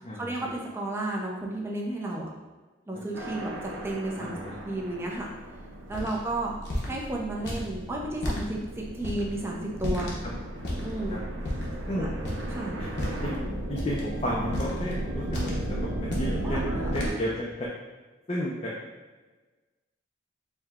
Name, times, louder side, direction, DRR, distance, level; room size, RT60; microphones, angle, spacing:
voice 1, 0.1-2.3 2.9-4.4 4.6-5.3 5.9-6.5 6.8-10.1 10.8-11.2 11.9-12.1 12.5-12.8 16.4-17.2, right 1 dB, 15° right, -2 dB, 0.5 m, -33 dB
sound 1, 3.1-17.1, right 1 dB, 80° right, 0.7 m, -35 dB
voice 2, 4.2-4.6 10.0-10.1 11.1-11.2 11.9-12.1 12.8-12.9 13.2-13.3 13.7-17.4 18.3-18.7, equal, 30° left, -4 dB, 0.5 m, -32 dB
sound 2, 5.9-6.2 6.6-6.9 7.5-7.7 8.2-8.4 9.0-9.2 9.8-10.2 10.6-10.9 11.4-11.7 12.2-12.5 12.9-13.3 13.8-14.0 14.5-14.9 15.3-15.6 16.0-16.4 16.9-17.2, left 1 dB, 60° left, 0.9 m, -32 dB
4.6 x 2.2 x 3.5 m, 1.3 s
head